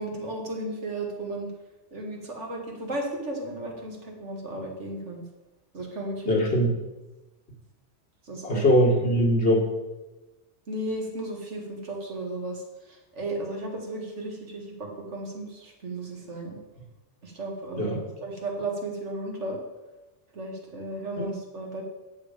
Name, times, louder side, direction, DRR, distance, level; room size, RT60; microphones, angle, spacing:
voice 1, 0.0-1.5 1.9-5.2 5.7-6.4 8.3-8.6 10.7-12.6 12.9-16.6 17.2-19.6 20.3-21.8, right 1 dB, 80° right, 0 dB, 2.3 m, -34 dB
voice 2, 6.3-6.7 8.4-9.7 17.8-18.0 21.2-21.3, equal, 65° left, 0 dB, 2.2 m, -21 dB
10.0 x 7.4 x 5.2 m, 1.1 s
omnidirectional pair, 1.2 m